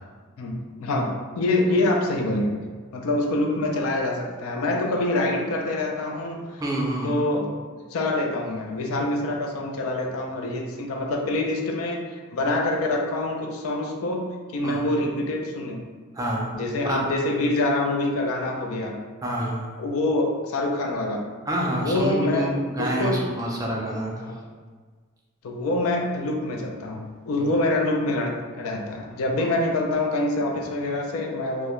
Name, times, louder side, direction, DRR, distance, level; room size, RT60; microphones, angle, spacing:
voice 1, 0.4-2.5 2.9-6.6 7.0-7.5 7.9-14.3 14.5-15.8 16.5-19.0 19.8-21.2 21.8-22.5 22.8-23.2 24.2-24.4 25.4-31.7, left 2 dB, 70° left, 1 dB, 0.4 m, -25 dB
voice 2, 6.6-7.1 14.6-14.8 16.1-17.1 19.2-19.7 21.5-24.1 29.4-29.5, right 1 dB, 15° right, -2 dB, 0.3 m, -27 dB
2.3 x 2.1 x 2.9 m, 1.5 s
head